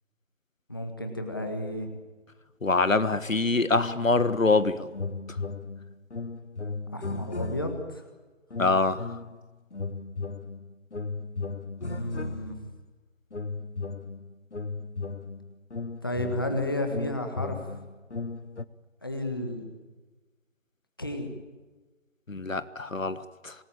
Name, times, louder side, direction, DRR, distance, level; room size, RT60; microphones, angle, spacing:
voice 1, 0.7-1.9 6.9-8.0 11.8-12.6 16.0-17.6 19.0-19.6 21.0-21.3, left 1 dB, 15° left, 5 dB, 1.5 m, -32 dB
voice 2, 2.6-4.9 8.6-9.1 22.3-23.5, left 3 dB, 85° left, 13 dB, 1.6 m, -25 dB
sound 1, 3.7-4.6 4.9-8.0 8.5-9.4 9.7-12.8 13.3-18.6, left 4 dB, 60° left, 1.2 m, -36 dB
26.5 x 19.5 x 8.6 m, 1.3 s
figure-of-eight pair, 170°, 39 cm